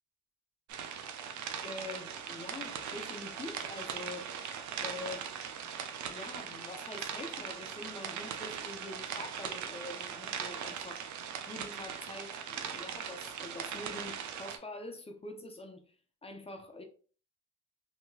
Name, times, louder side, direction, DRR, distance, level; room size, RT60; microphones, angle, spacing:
sound 1, 0.7-14.6, right 7 dB, 70° right, 0.5 m, -40 dB
voice 1, 1.6-4.3 4.8-5.3 6.0-11.1 11.5-15.9 16.2-16.8, left 2 dB, 20° left, 0.6 m, -45 dB
3.0 x 2.8 x 2.3 m
cardioid pair, 90°, 30 cm